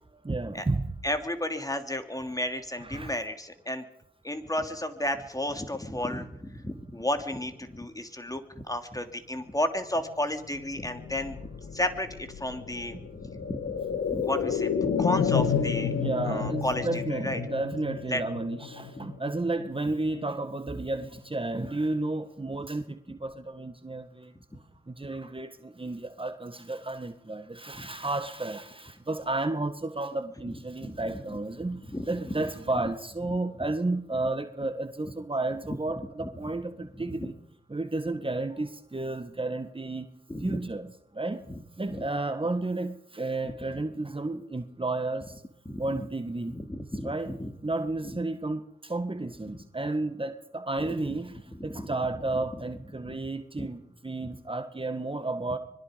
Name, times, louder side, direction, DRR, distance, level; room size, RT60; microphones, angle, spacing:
voice 1, 0.0-1.0 2.8-3.1 12.9-13.0 15.9-24.3 24.9-37.3 37.7-40.1 40.4-41.4 41.8-45.4 45.8-46.5 47.0-47.3 47.6-55.6, right 2 dB, 30° right, 8 dB, 1.7 m, -32 dB
voice 2, 1.0-3.8 4.2-11.4 11.7-15.9 16.2-17.4 18.1-18.2 27.7-27.9 30.8-31.0 31.8-32.3 36.2-36.3 36.8-37.3 40.3-40.6 41.9-42.0 43.4-43.8 45.6-45.9 46.5-47.5 51.1-51.2 51.6-51.9 53.0-53.3 53.6-53.7, left 1 dB, 20° left, 7 dB, 2.9 m, -33 dB
sound 1, 10.4-20.2 20.6-20.7, left 7 dB, 85° left, 1.5 m, -31 dB
25.5 x 21.0 x 5.2 m, 0.81 s
supercardioid pair, 40°, 19 cm